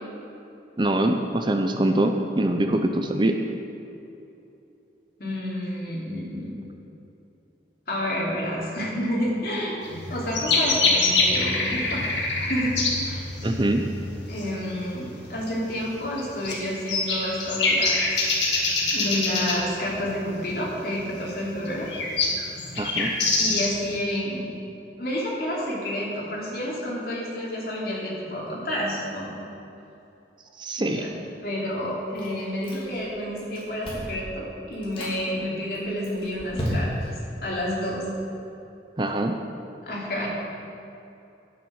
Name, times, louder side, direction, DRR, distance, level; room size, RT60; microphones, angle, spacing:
voice 1, 0.8-3.4 13.4-13.9 22.8-23.1 30.6-31.0 39.0-39.4, right 1 dB, 25° right, 5 dB, 0.6 m, -23 dB
voice 2, 5.2-6.6 7.9-9.7 10.1-12.0 12.4-13.3 14.3-18.0 18.9-21.9 23.4-24.5 25.0-29.3 30.8-31.1 31.4-36.9 37.4-38.1 39.9-40.3, equal, 55° left, -5 dB, 3.0 m, -29 dB
sound 1, 9.8-23.9, left 3 dB, 85° left, 2.0 m, -25 dB
Chewing mastication, 32.2-33.1 33.4-34.2 34.7-35.2 35.7-37.2, equal, 30° left, 2.8 m, -33 dB
11.5 x 8.7 x 6.4 m, 2.8 s
head